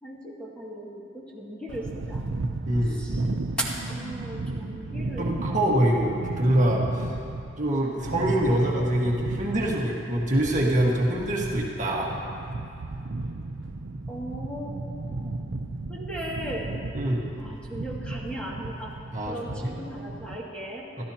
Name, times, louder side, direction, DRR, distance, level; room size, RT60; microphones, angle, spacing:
voice 1, 0.0-2.2 2.8-3.2 3.6-5.6 14.1-15.4 15.9-16.7 17.4-18.9 19.3-20.9, right 1 dB, 5° left, -5 dB, 2.2 m, -37 dB
sound 1, 1.7-20.4, right 2 dB, 90° right, 0.6 m, -34 dB
voice 2, 2.7-3.0 5.2-7.1 7.6-12.1 16.9-17.2 19.1-19.8 21.0-21.1, right 1 dB, 40° right, -3 dB, 1.6 m, -25 dB
27.5 x 13.5 x 2.9 m, 2.6 s
head